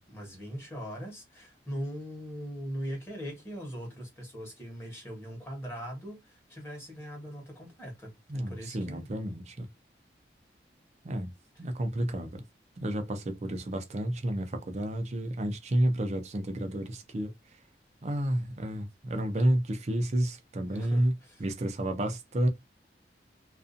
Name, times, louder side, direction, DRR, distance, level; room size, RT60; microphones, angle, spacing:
voice 1, 0.0-9.1 20.7-21.4, equal, 15° left, 1.1 m, -40 dB
voice 2, 8.3-9.7 11.0-11.3 11.6-12.4 12.8-17.6 18.0-21.1 21.4-22.5, right 1 dB, 40° right, 0.5 m, -30 dB
2.5 x 2.3 x 2.5 m
head